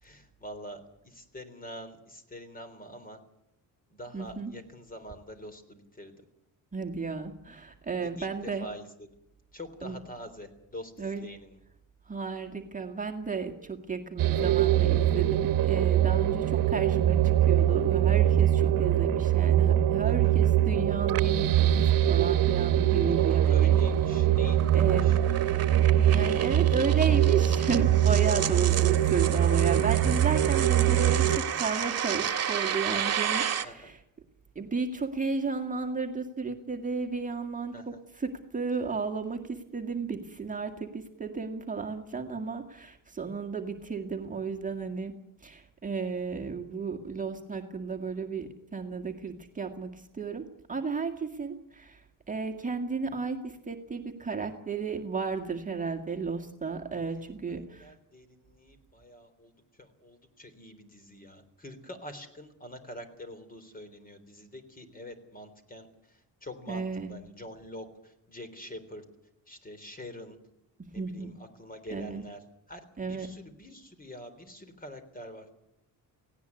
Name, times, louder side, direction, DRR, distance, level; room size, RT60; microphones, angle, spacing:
voice 1, 0.0-3.2 3.9-6.1 8.0-9.1 9.5-11.6 20.0-20.3 23.1-25.2 33.6-33.9 37.7-38.0 57.0-69.0 69.5-70.4 70.9-75.5, equal, 25° left, 10 dB, 3.6 m, -46 dB
voice 2, 4.1-4.5 6.7-8.7 9.8-10.0 11.0-11.2 12.1-17.2 17.5-23.8 24.2-24.4 24.7-25.2 26.0-34.0 34.6-45.1 45.4-57.9 66.7-67.1 71.0-71.3 71.9-72.2 73.0-73.3, right 4 dB, 20° right, 3 dB, 1.9 m, -33 dB
sound 1, 14.2-31.4, right 11 dB, 65° right, 1.2 m, -23 dB
sound 2, 22.9-33.6, right 8 dB, 45° right, 1.8 m, -33 dB
18.0 x 17.0 x 9.7 m, 0.79 s
cardioid pair, 125°, 35 cm